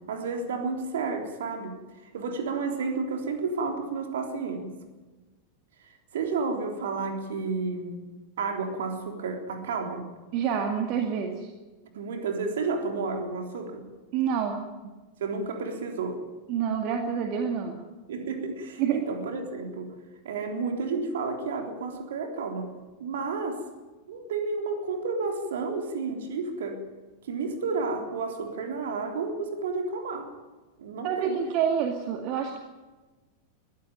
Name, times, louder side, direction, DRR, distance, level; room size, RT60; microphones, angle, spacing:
voice 1, 0.1-4.7 5.8-8.0 8.4-10.1 11.9-13.9 15.2-16.2 18.1-19.9 20.2-23.6 24.1-26.8 27.2-30.3 30.8-31.4, right 4 dB, 60° right, 5 dB, 3.5 m, -31 dB
voice 2, 10.3-11.5 14.1-14.7 16.5-17.8 18.8-19.0 31.0-32.6, right 7 dB, 40° right, 4 dB, 2.1 m, -27 dB
22.0 x 15.0 x 9.2 m, 1.2 s
figure-of-eight pair, 90°, 0 cm